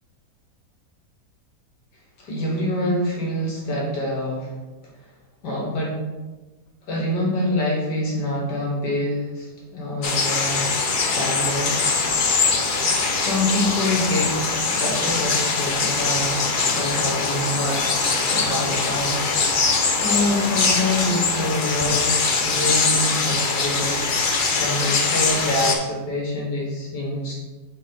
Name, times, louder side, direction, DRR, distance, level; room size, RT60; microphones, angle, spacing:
voice 1, 2.2-4.5 5.4-6.0 6.9-10.7 11.1-11.8 13.1-14.4 14.7-16.4 16.7-18.0 18.3-19.3 20.0-24.1 24.5-27.3, left 1 dB, 75° left, -3 dB, 1.9 m, -26 dB
sound 1, 10.0-25.7, left 4 dB, 55° left, 0.5 m, -22 dB
6.4 x 5.0 x 3.8 m, 1.2 s
omnidirectional pair, 1.8 m